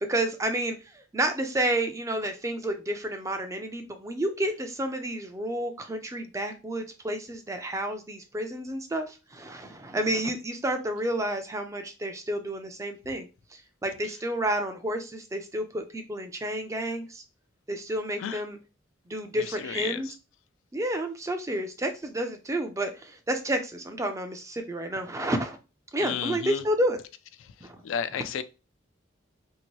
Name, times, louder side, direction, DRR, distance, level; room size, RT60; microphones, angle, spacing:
voice 1, 0.0-17.2 17.7-18.6 19.1-20.1 20.7-25.6 25.9-27.0 27.6-27.8 28.1-28.2, right 1 dB, 15° right, 0.4 m, -30 dB
voice 2, 19.4-20.0 26.0-26.6 27.8-28.4, left 8 dB, 85° left, 0.3 m, -32 dB
2.8 x 2.5 x 3.0 m
head